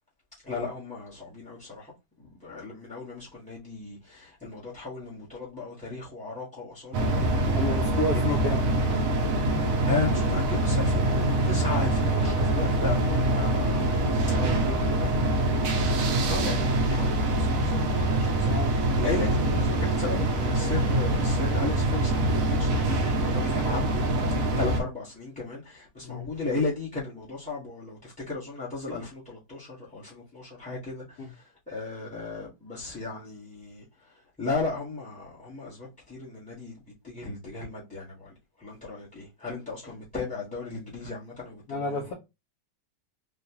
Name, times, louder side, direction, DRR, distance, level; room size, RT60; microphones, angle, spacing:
voice 1, 0.4-7.7 8.1-8.4 9.3-14.0 14.3-15.1 16.1-36.8 37.0-42.1, left 3 dB, 5° left, 0.9 m, -35 dB
sound 1, 6.9-24.8, right 1 dB, 65° right, 0.9 m, -25 dB
voice 2, 7.5-8.6 14.4-15.0 18.5-18.8 26.0-26.3 31.2-31.3 41.7-42.1, left 2 dB, 65° left, 1.2 m, -31 dB
3.7 x 2.3 x 2.8 m
omnidirectional pair, 1.9 m